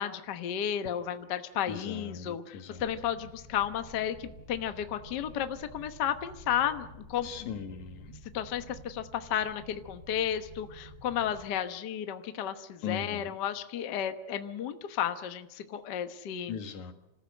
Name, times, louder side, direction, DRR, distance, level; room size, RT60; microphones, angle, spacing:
voice 1, 0.0-7.3 8.3-16.5, left 9 dB, 55° left, 9 dB, 1.2 m, -33 dB
voice 2, 1.7-2.8 7.2-8.2 12.8-13.4 16.5-16.9, left 7 dB, 80° left, 7 dB, 2.9 m, -39 dB
sound 1, 2.8-11.5, right 1 dB, 30° right, 4.2 m, -50 dB
26.0 x 14.5 x 7.9 m, 0.93 s
omnidirectional pair, 3.3 m